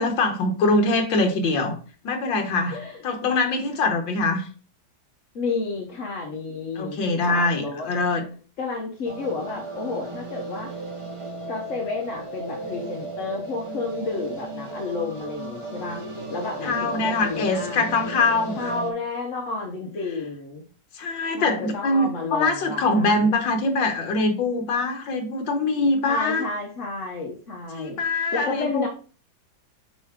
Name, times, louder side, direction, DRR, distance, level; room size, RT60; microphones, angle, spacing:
voice 1, 0.0-1.8 2.0-4.5 6.7-8.3 16.6-18.7 20.9-26.4 27.7-28.9, left 2 dB, 70° left, 5 dB, 1.8 m, -23 dB
voice 2, 2.7-3.0 5.3-7.9 8.6-10.7 11.5-16.0 16.3-18.0 18.6-20.6 21.3-23.4 26.0-28.9, left 3 dB, 50° left, 0 dB, 1.1 m, -31 dB
sound 1, 9.0-18.9, right 2 dB, 40° right, 0.4 m, -35 dB
7.3 x 4.6 x 3.6 m, 0.39 s
omnidirectional pair, 2.1 m